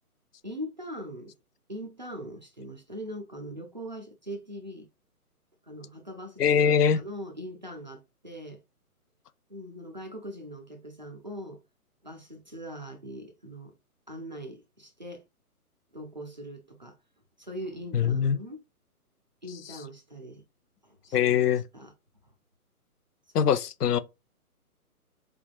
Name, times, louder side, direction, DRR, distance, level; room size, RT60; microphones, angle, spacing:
voice 1, 0.4-1.3 1.7-4.9 5.6-8.6 9.5-11.6 12.0-13.7 14.1-15.2 15.9-17.0 17.4-18.6 19.4-20.4 20.8-21.9 23.4-23.5, equal, 35° right, 0.4 m, -41 dB
voice 2, 6.4-7.0 17.9-18.4 21.1-21.6 23.3-24.0, left 8 dB, 90° left, 0.6 m, -22 dB
3.6 x 3.4 x 2.2 m
hypercardioid pair, 155°, 45 cm